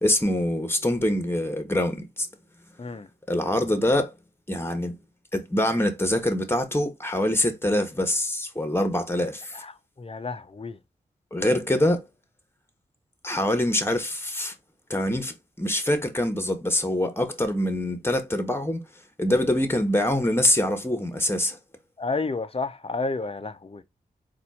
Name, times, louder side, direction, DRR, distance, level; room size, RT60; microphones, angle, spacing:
voice 1, 0.0-2.3 3.3-4.2 4.5-5.0 5.3-9.6 11.3-12.0 13.2-14.5 14.9-18.8 19.2-21.6, left 1 dB, 15° left, 1.4 m, -24 dB
voice 2, 10.0-10.8 22.0-23.8, left 3 dB, 35° left, 0.7 m, -31 dB
4.2 x 2.6 x 4.2 m
cardioid pair, 40°, 18 cm